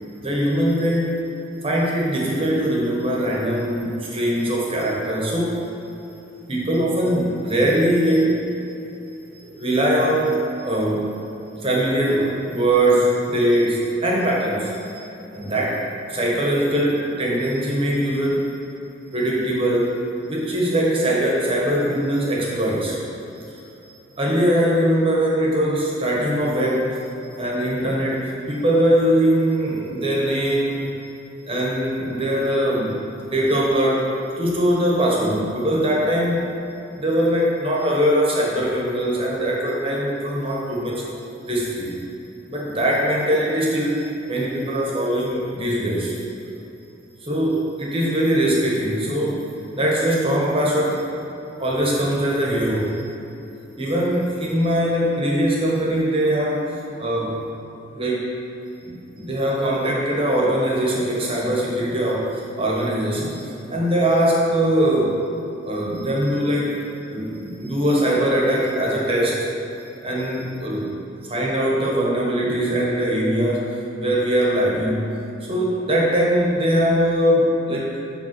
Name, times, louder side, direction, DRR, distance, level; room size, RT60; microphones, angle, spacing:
voice 1, 0.2-1.2 1.6-5.6 6.5-8.3 9.5-11.2 11.6-15.0 15.3-18.5 19.1-23.0 23.3-23.7 24.2-27.1 27.4-30.9 31.5-34.1 34.4-36.5 36.9-41.0 41.4-42.0 42.5-46.2 47.2-49.4 49.7-51.0 51.6-53.1 53.8-56.7 57.0-57.4 57.9-58.3 58.8-63.4 63.7-65.2 65.6-69.5 70.0-70.9 71.3-75.0 75.5-77.9, right 1 dB, 30° right, -4 dB, 1.2 m, -21 dB
7.8 x 3.5 x 5.9 m, 2.9 s
head